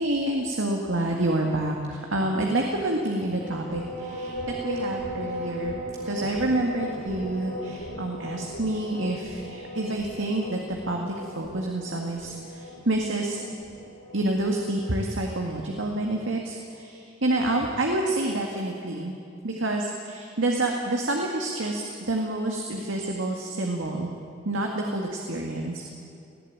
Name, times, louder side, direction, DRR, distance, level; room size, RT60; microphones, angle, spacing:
voice 1, 0.0-4.3 4.6-5.8 6.1-10.6 10.9-13.4 14.1-19.1 19.4-24.1 24.5-25.8, right 1 dB, 75° right, 1 dB, 1.9 m, -28 dB
sound 1, 3.3-15.2, equal, 50° left, 5.3 m, -37 dB
19.0 x 15.5 x 9.1 m, 2.7 s
head